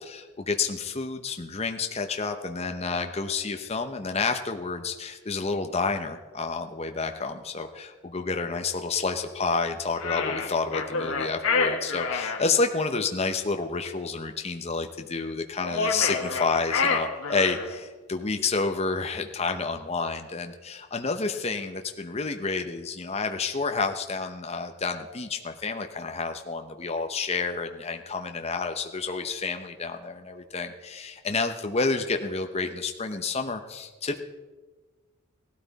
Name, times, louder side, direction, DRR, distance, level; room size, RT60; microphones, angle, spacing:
voice 1, 0.0-34.2, left 4 dB, 30° left, 6 dB, 0.7 m, -29 dB
sound 1, 10.0-12.4 15.6-17.8, left 4 dB, 80° left, 1.7 m, -27 dB
17.0 x 13.0 x 4.1 m, 1.3 s
head